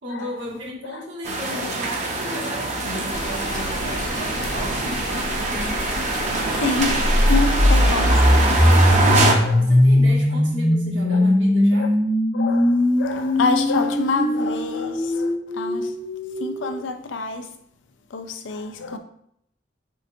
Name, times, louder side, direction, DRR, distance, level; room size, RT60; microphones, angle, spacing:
voice 1, 0.0-5.8 9.5-11.9, equal, 75° right, 1.3 m, -35 dB
sound 1, 1.2-9.3, right 2 dB, 40° right, 0.7 m, -24 dB
sound 2, 3.1-9.2, left 1 dB, 45° left, 0.9 m, -33 dB
voice 2, 6.6-9.9 11.1-11.3 11.7-11.9 12.3-16.0 16.4-17.5 18.1-19.0, left 4 dB, 85° left, 0.5 m, -28 dB
sound 3, 6.9-16.8, left 1 dB, 10° left, 0.3 m, -19 dB
4.4 x 3.8 x 2.6 m
head